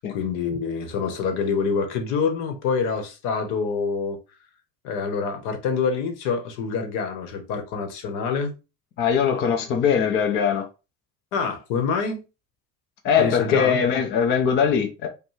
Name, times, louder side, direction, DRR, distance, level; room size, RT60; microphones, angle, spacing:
voice 1, 0.0-4.2 4.8-8.5 11.3-12.2 13.2-13.8, left 5 dB, 65° left, 1.0 m, -26 dB
voice 2, 9.0-10.7 13.0-15.1, left 7 dB, 30° left, 0.5 m, -21 dB
5.5 x 2.2 x 3.1 m
cardioid pair, 175°, 34 cm